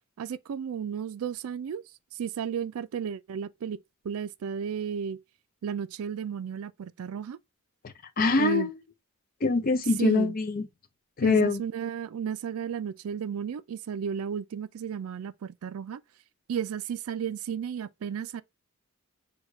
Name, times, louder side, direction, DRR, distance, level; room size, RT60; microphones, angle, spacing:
voice 1, 0.2-1.8 2.1-3.8 4.0-5.2 5.6-7.4 8.4-8.7 10.0-10.4 11.2-16.0 16.5-18.4, right 7 dB, 75° right, 0.3 m, -33 dB
voice 2, 7.8-8.7 9.4-10.6 11.2-11.6, left 3 dB, 40° left, 0.5 m, -24 dB
6.3 x 2.2 x 3.1 m
head